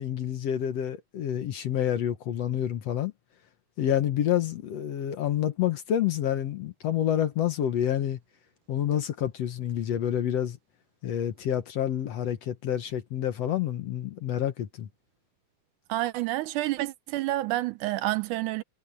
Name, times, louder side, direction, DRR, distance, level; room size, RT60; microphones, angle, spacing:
voice 1, 0.0-3.1 3.8-8.2 8.7-10.6 11.0-14.9, left 10 dB, 60° left, 2.0 m, -28 dB
voice 2, 15.9-18.6, right 16 dB, 80° right, 2.1 m, -29 dB
omnidirectional pair, 3.7 m